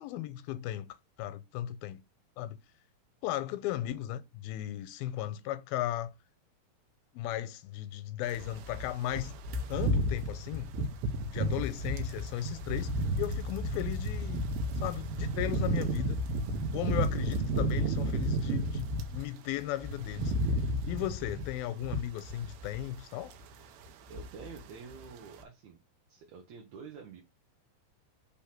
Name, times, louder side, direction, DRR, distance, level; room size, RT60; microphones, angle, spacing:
voice 1, 0.0-2.0 2.4-2.6 3.2-6.1 7.1-9.3 9.7-10.7 11.3-14.4 14.8-16.2 16.7-20.3 20.9-23.3, left 13 dB, 85° left, 2.4 m, -36 dB
sound 1, 8.3-19.2 19.6-23.0 23.3-23.5 23.8-24.7 24.9-25.1, right 1 dB, 85° right, 2.7 m, -32 dB
voice 2, 24.1-25.8 26.1-27.2, right 6 dB, 65° right, 1.9 m, -48 dB
5.7 x 3.4 x 5.8 m
omnidirectional pair, 4.2 m